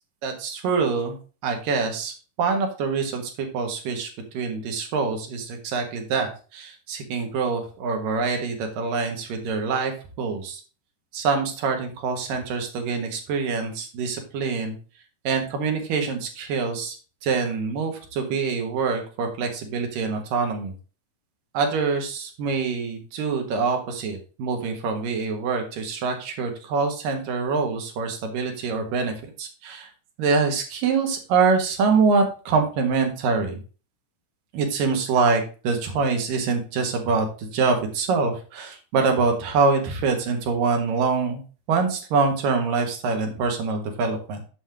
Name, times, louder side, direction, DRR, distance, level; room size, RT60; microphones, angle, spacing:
voice 1, 0.2-1.2 1.4-4.1 4.3-9.9 10.2-10.6 11.1-14.7 15.2-17.0 17.2-20.7 21.5-29.9 30.2-33.5 34.5-41.4 41.7-44.4, right 4 dB, 65° right, 4 dB, 2.8 m, -25 dB
7.6 x 6.2 x 3.4 m, 0.35 s
omnidirectional pair, 4.6 m